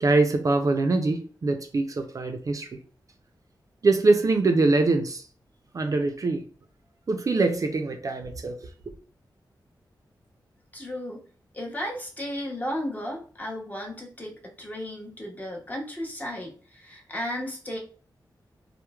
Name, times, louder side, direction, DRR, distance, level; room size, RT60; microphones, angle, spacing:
voice 1, 0.0-2.7 3.8-5.2 5.7-6.4 7.1-8.6, right 3 dB, 45° right, 6 dB, 0.4 m, -23 dB
voice 2, 10.7-11.2 11.5-17.8, equal, 20° left, -1 dB, 0.7 m, -34 dB
2.9 x 2.0 x 2.2 m, 0.41 s
wide cardioid pair, 90°, 8 cm